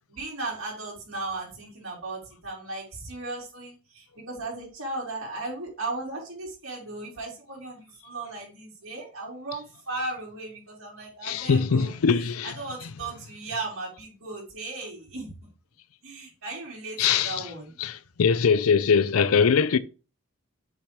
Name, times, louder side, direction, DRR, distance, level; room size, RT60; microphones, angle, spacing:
voice 1, 0.1-15.3 16.0-17.0 17.2-17.7, right 2 dB, 75° right, 3.8 m, -36 dB
voice 2, 11.2-12.5 17.0-17.4 17.8-19.8, left 6 dB, 85° left, 0.5 m, -22 dB
7.3 x 3.2 x 5.2 m
head